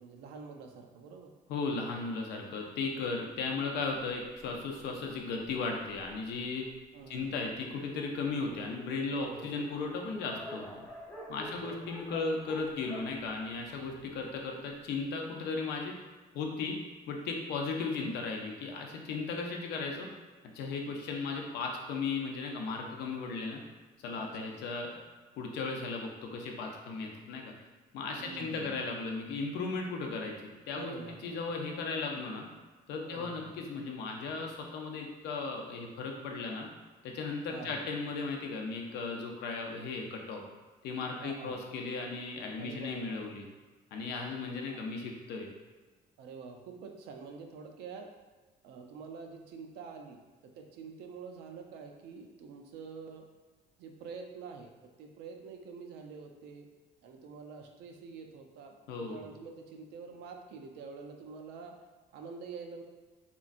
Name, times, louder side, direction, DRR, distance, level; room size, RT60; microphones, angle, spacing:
voice 1, 0.0-1.3 6.9-7.4 9.1-9.5 11.4-11.7 24.1-24.5 28.2-28.9 30.7-31.5 33.1-33.5 37.5-37.9 41.2-41.6 42.6-43.4 44.7-44.8 46.2-48.1 48.6-53.3 53.8-54.7 55.0-56.7 57.0-61.7 62.1-62.8, right 5 dB, 80° right, 3 dB, 0.4 m, -47 dB
voice 2, 1.5-6.7 7.1-10.9 11.3-15.9 16.3-16.8 17.1-20.1 20.5-23.6 24.0-25.0 25.4-27.5 27.9-30.3 30.7-30.9 31.2-32.5 32.9-36.7 37.0-40.4 40.8-43.4 43.9-45.5 58.9-59.2, left 4 dB, 75° left, 1 dB, 0.5 m, -36 dB
Dog, 3.4-6.4 7.1-7.2 7.5-7.6 7.8-14.2, equal, 10° left, 0.7 m, -48 dB
3.0 x 2.4 x 2.4 m, 1.3 s
cardioid pair, 110°, 17 cm